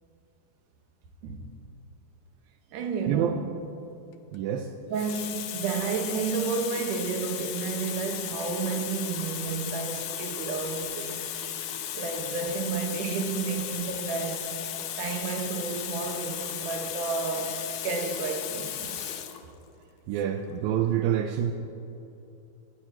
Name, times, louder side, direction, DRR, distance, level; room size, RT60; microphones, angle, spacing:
voice 1, 2.7-3.5 4.9-11.3 12.0-14.5 15.0-19.2, right 5 dB, 65° right, 2.7 m, -31 dB
Water tap faucet, 4.1-4.4 4.9-19.4 20.3-20.5, left 10 dB, 70° left, 1.9 m, -35 dB
voice 2, 4.3-4.7 20.1-21.5, right 10 dB, 80° right, 2.5 m, -27 dB
24.5 x 19.5 x 3.0 m
omnidirectional pair, 4.3 m